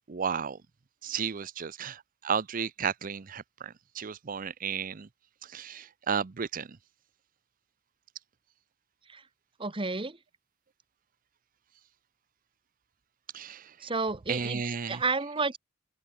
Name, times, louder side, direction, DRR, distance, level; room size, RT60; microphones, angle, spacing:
voice 1, 0.1-0.6 1.0-5.1 5.4-6.8 13.3-13.7 14.3-15.0, right 6 dB, 45° right, 0.6 m, -33 dB
voice 2, 9.6-10.2 13.8-14.6 14.9-15.6, right 3 dB, 25° right, 1.3 m, -31 dB
open air
head